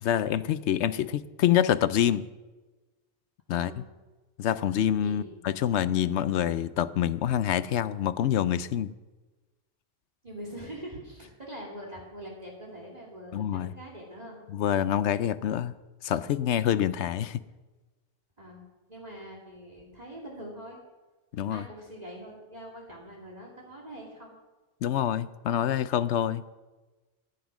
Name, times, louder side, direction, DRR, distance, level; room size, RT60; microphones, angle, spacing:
voice 1, 0.0-2.2 3.5-3.7 4.4-8.9 13.3-13.7 14.5-15.7 16.0-17.4 21.3-21.6 24.8-26.4, left 10 dB, 75° left, 15 dB, 0.9 m, -26 dB
voice 2, 3.5-3.8 5.0-5.4 10.2-14.4 18.4-18.6 18.9-20.8 21.5-24.4, equal, 35° right, -2 dB, 2.6 m, -43 dB
14.0 x 10.5 x 6.1 m, 1.2 s
omnidirectional pair, 1.2 m